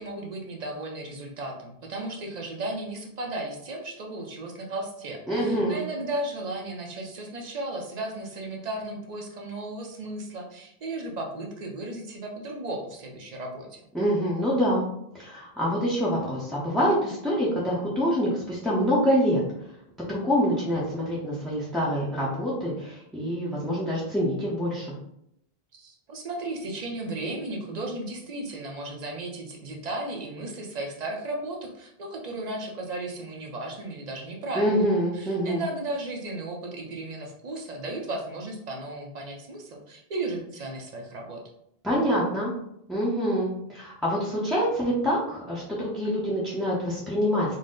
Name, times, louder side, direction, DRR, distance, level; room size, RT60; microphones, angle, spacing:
voice 1, 0.0-13.8 25.7-34.8 35.1-41.4, right 2 dB, 45° right, 1 dB, 0.7 m, -35 dB
voice 2, 5.3-5.8 13.9-14.9 15.1-19.4 20.1-24.9 34.5-35.6 41.8-42.5 42.9-47.5, equal, ahead, -7 dB, 0.6 m, -26 dB
4.0 x 2.1 x 3.7 m, 0.77 s
omnidirectional pair, 1.1 m